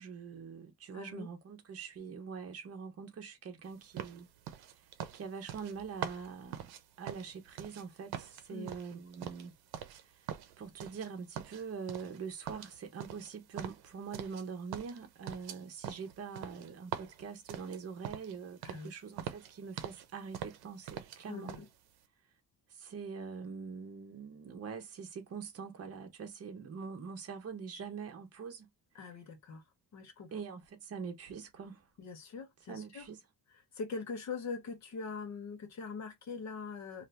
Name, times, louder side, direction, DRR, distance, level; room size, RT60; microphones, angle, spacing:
voice 1, 0.0-4.3 4.7-4.9 5.1-6.7 7.0-9.5 9.9-10.3 10.6-21.5 22.7-28.7 30.3-31.9 32.7-33.2, right 6 dB, 40° right, 0.9 m, -44 dB
voice 2, 0.9-1.3 8.5-8.7 18.6-18.9 21.3-21.7 28.9-29.6 29.9-30.3 32.0-33.0 33.7-37.1, left 4 dB, 45° left, 0.9 m, -42 dB
sound 1, 4.0-7.8 8.1-10.0 10.3-11.1 11.4-12.2 12.5-14.5 14.7-18.4 18.6-18.9 19.2-20.1 20.3-21.2 21.5-21.7, right 10 dB, 85° right, 0.7 m, -43 dB
2.7 x 2.5 x 3.3 m
cardioid pair, 170°, 37 cm